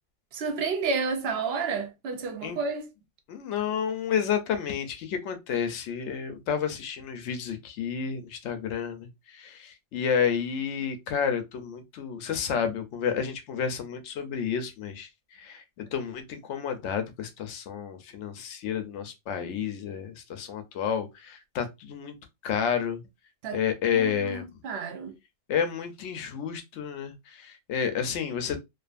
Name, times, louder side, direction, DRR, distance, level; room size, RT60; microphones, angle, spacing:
voice 1, 0.3-2.9 23.4-23.6 23.9-25.1, right 4 dB, 60° right, 0.7 m, -30 dB
voice 2, 3.3-9.1 9.3-15.1 15.4-22.1 22.4-23.0 23.5-24.4 25.5-28.6, left 7 dB, 70° left, 0.8 m, -30 dB
2.5 x 2.4 x 2.4 m
omnidirectional pair, 1.4 m